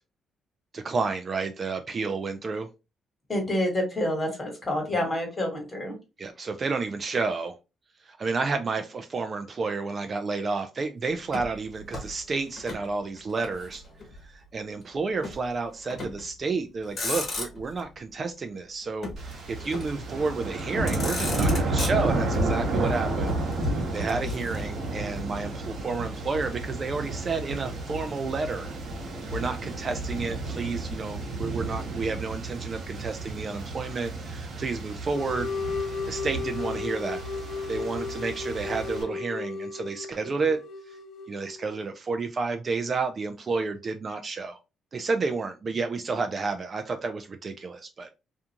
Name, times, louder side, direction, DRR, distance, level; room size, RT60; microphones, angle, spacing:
voice 1, 0.7-2.7 4.9-5.0 6.2-7.6 8.0-13.8 14.3-23.3 23.9-28.7 29.3-35.5 36.1-37.2 37.7-40.6 41.3-44.6 44.9-48.1, right 4 dB, 40° right, 0.4 m, -30 dB
voice 2, 3.3-5.9, left 1 dB, 25° left, 1.4 m, -28 dB
Motor vehicle (road), 11.3-12.9 13.2-14.2 15.2-15.5 15.9-16.3 16.8-17.8 19.0-20.1 20.6-20.7 20.9-22.4 23.3-24.9, left 2 dB, 45° left, 1.0 m, -36 dB
sound 1, 19.2-39.0, right 2 dB, 65° right, 1.0 m, -31 dB
sound 2, 35.1-41.9, left 4 dB, 65° left, 0.4 m, -35 dB
2.5 x 2.3 x 2.8 m
cardioid pair, 90°, 0 cm